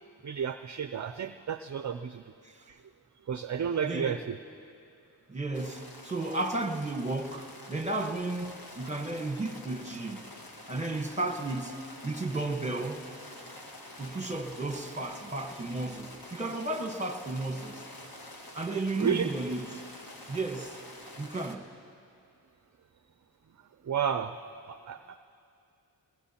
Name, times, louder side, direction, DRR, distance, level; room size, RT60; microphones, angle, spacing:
voice 1, 0.2-2.2 2.7-2.8 3.3-4.4 19.0-19.3 23.8-24.4 24.7-25.2, right 7 dB, 40° right, 10 dB, 0.5 m, -31 dB
voice 2, 3.8-4.3 5.3-10.3 10.7-13.0 14.0-17.8 18.5-19.8 20.3-20.8 21.2-21.7, right 2 dB, 15° right, 5 dB, 1.3 m, -33 dB
sound 1, 5.5-21.6, left 1 dB, 55° left, 1.7 m, -47 dB
22.0 x 21.5 x 2.9 m, 2.5 s
cardioid pair, 45°, 44 cm